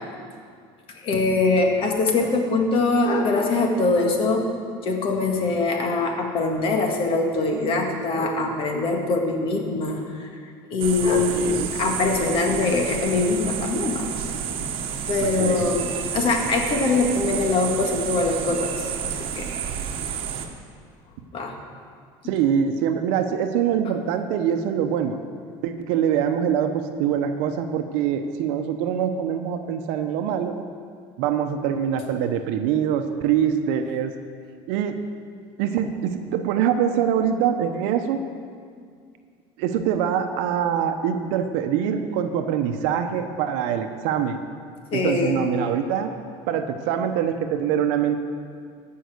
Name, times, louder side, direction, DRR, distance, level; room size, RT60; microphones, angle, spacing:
voice 1, 1.0-4.5 4.8-10.3 10.7-14.1 15.1-19.5 21.3-21.5 44.9-45.4, left 3 dB, 50° left, 2 dB, 1.8 m, -23 dB
sound 1, 10.8-20.5, right 8 dB, 50° right, 1.2 m, -30 dB
voice 2, 11.1-11.7 15.2-15.7 22.2-25.2 25.6-30.7 31.2-34.1 34.7-35.0 35.6-38.2 39.6-44.4 44.9-46.1 46.5-48.2, right 8 dB, 75° right, 7 dB, 0.8 m, -24 dB
15.0 x 5.6 x 6.4 m, 2.2 s
supercardioid pair, 115°, 12 cm